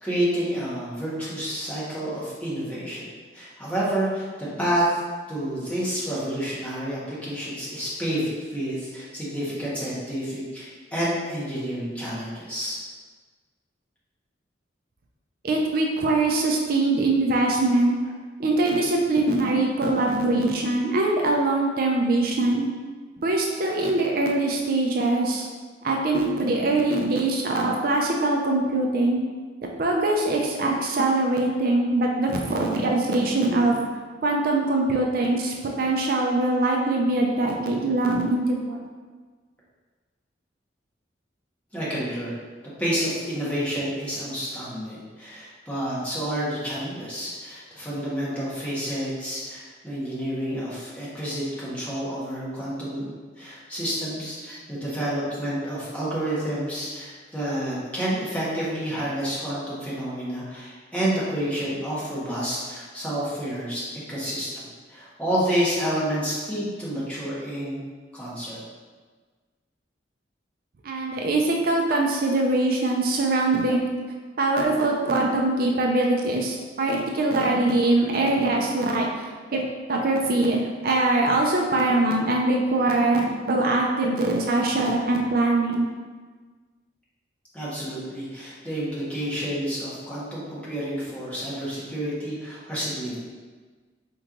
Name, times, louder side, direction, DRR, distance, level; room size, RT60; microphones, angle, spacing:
voice 1, 0.0-3.1 3.3-4.9 5.3-12.8 41.7-42.3 42.8-63.8 64.1-67.8 68.1-68.6 87.5-93.2, equal, 5° left, -9 dB, 1.3 m, -29 dB
voice 2, 15.4-17.9 18.4-22.7 23.2-25.5 25.8-29.2 29.8-33.8 34.2-38.8 70.8-73.9 74.4-79.1 79.5-79.6 79.9-85.9, right 2 dB, 55° right, 0 dB, 0.5 m, -22 dB
4.4 x 3.1 x 3.7 m, 1.4 s
head